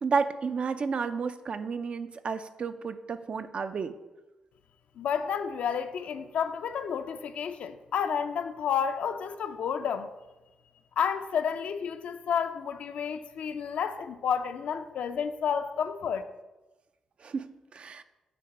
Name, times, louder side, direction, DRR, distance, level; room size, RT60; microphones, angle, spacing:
voice 1, 0.0-4.0 17.2-18.0, right 5 dB, 55° right, 0.4 m, -31 dB
voice 2, 5.0-10.1 11.0-16.2, left 7 dB, 70° left, 0.4 m, -30 dB
6.8 x 2.8 x 5.2 m
supercardioid pair, 50°, 2 cm